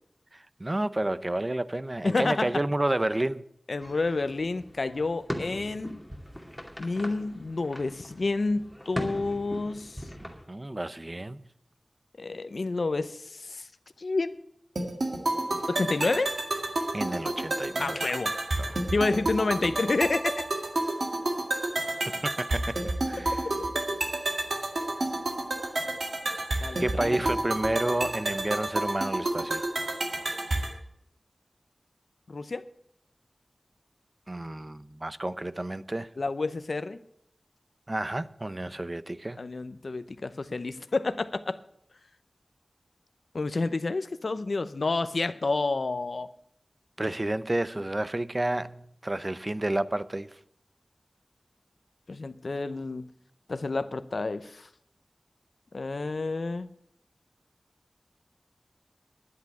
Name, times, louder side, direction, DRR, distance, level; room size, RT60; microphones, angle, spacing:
voice 1, 0.3-3.5 10.2-11.4 16.9-18.0 18.6-18.8 22.1-23.4 26.8-29.6 34.3-36.1 37.9-39.5 47.0-50.3, right 1 dB, 35° right, 0.6 m, -30 dB
voice 2, 2.0-2.5 3.7-6.0 6.8-10.1 12.2-13.7 14.0-14.4 15.7-16.3 17.8-18.3 18.9-20.3 26.6-27.2 32.3-32.6 36.2-37.0 39.4-41.6 43.3-46.3 52.1-53.0 53.5-54.7 55.7-56.7, left 3 dB, 75° left, 0.6 m, -29 dB
sound 1, 3.8-10.4, equal, ahead, 2.4 m, -40 dB
sound 2, 14.8-30.8, right 2 dB, 85° right, 2.0 m, -30 dB
10.5 x 8.2 x 9.5 m
wide cardioid pair, 55°, 0 cm